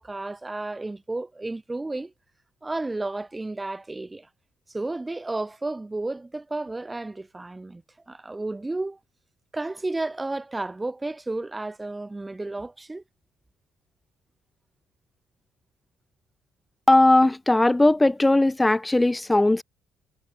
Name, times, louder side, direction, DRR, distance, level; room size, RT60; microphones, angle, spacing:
voice 1, 0.0-2.1 2.6-4.3 4.7-9.0 9.5-13.0, right 2 dB, 20° right, 3.1 m, -32 dB
voice 2, 16.9-19.6, left 2 dB, 15° left, 0.4 m, -18 dB
supercardioid pair, 60°, 0 cm